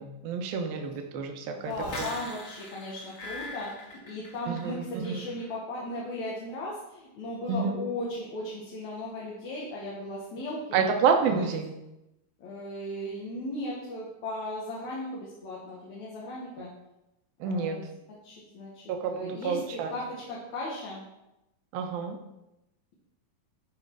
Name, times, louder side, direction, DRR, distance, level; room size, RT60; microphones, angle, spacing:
voice 1, 0.0-1.7 2.0-2.1 4.5-5.2 7.5-7.8 10.7-11.7 16.6-16.7 17.4-17.8 18.9-19.9 21.7-22.2, right 5 dB, 80° right, 3 dB, 2.8 m, -29 dB
voice 2, 1.5-10.9 11.4-11.5 12.4-16.7 17.4-17.8 18.2-21.0, left 1 dB, 60° left, -5 dB, 2.7 m, -37 dB
sound 1, 1.7-4.8 5.0-5.5, left 2 dB, 40° left, 1.8 m, -41 dB
12.5 x 5.4 x 4.7 m, 0.93 s
omnidirectional pair, 4.2 m